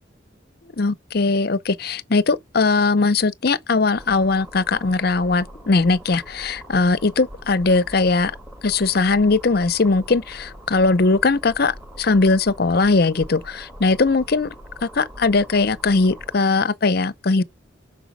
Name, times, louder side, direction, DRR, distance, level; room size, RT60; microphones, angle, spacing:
voice 1, 0.6-8.4 8.6-14.5 14.8-17.4, left 3 dB, 50° left, 0.6 m, -20 dB
sound 1, 3.9-16.4, equal, 15° right, 2.7 m, -42 dB
6.6 x 5.0 x 6.5 m
head